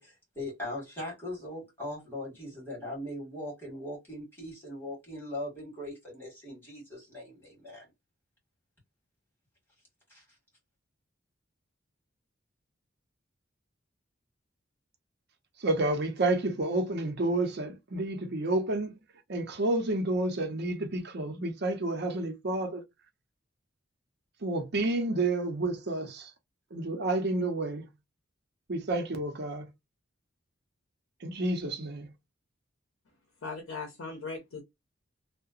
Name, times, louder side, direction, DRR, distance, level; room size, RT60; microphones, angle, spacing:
voice 1, 0.0-7.9 10.1-10.2, left 1 dB, 10° left, 1.7 m, -40 dB
voice 2, 15.6-19.0 19.3-22.8 24.4-26.3 26.7-27.9 28.7-29.7 31.2-32.1, right 2 dB, 55° right, 0.7 m, -30 dB
voice 3, 33.4-34.6, left 4 dB, 90° left, 0.7 m, -38 dB
2.8 x 2.1 x 2.4 m
head